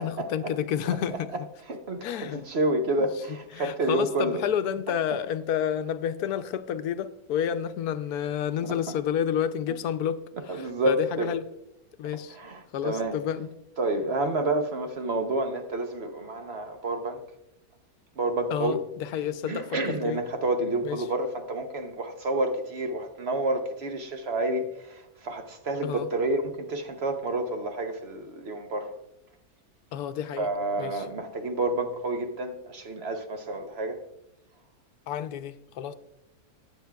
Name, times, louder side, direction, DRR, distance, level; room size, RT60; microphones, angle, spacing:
voice 1, 0.0-1.3 2.0-2.4 3.0-3.1 3.5-11.4 12.0-12.4 12.7-13.5 18.5-20.2 20.8-21.1 25.8-26.1 29.9-30.5 30.8-31.0 35.1-35.9, left 9 dB, 85° left, 1.1 m, -30 dB
voice 2, 1.7-4.4 8.6-8.7 10.5-11.3 12.3-13.2 13.8-17.2 18.2-18.8 19.5-28.9 30.4-34.0, right 2 dB, 50° right, 1.0 m, -29 dB
15.0 x 9.5 x 2.3 m
omnidirectional pair, 1.6 m